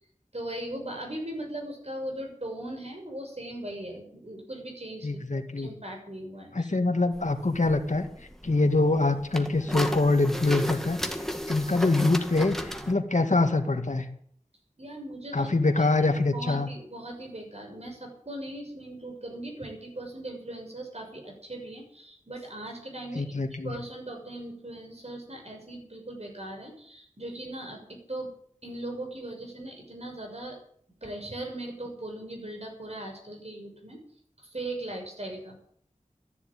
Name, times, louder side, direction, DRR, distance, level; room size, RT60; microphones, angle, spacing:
voice 1, 0.3-6.7 14.8-15.5 15.8-15.9 16.3-23.3 23.6-28.3 28.6-30.6 31.0-34.0 34.4-35.6, right 1 dB, 55° right, 2 dB, 6.5 m, -39 dB
voice 2, 5.0-5.7 6.5-8.1 8.4-11.0 11.5-14.1 15.3-16.7 23.2-23.8, left 2 dB, 70° left, 6 dB, 1.9 m, -24 dB
sound 1, 7.1-12.9, equal, 5° left, 1.9 m, -35 dB
14.0 x 11.0 x 9.1 m, 0.63 s
wide cardioid pair, 50°, 13 cm